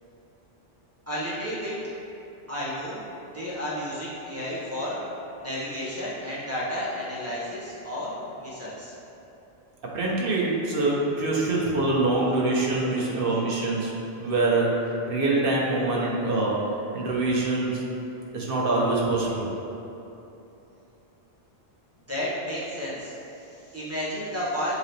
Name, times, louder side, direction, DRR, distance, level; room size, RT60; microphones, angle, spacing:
voice 1, 1.1-1.8 2.5-3.1 3.3-5.0 5.4-8.9 22.1-24.7, equal, 15° right, -9 dB, 1.5 m, -32 dB
voice 2, 9.9-13.9 14.2-17.8 18.3-19.5, right 2 dB, 55° right, -4 dB, 1.2 m, -25 dB
7.7 x 4.0 x 3.3 m, 2.9 s
omnidirectional pair, 1.1 m